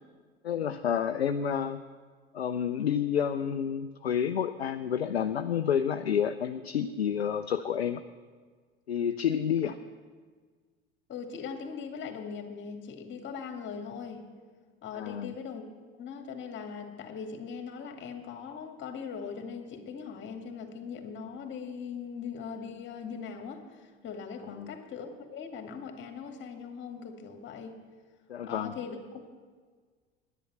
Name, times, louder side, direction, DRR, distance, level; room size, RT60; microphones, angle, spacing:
voice 1, 0.4-1.8 2.3-8.0 8.9-9.7 14.9-15.3 24.6-24.7 28.3-28.7, left 8 dB, 85° left, 9 dB, 0.5 m, -29 dB
voice 2, 11.1-14.2 14.8-15.7 16.0-27.8 28.4-29.3, left 6 dB, 40° left, 4 dB, 2.2 m, -40 dB
10.5 x 10.0 x 7.6 m, 1.5 s
figure-of-eight pair, 75°, 31 cm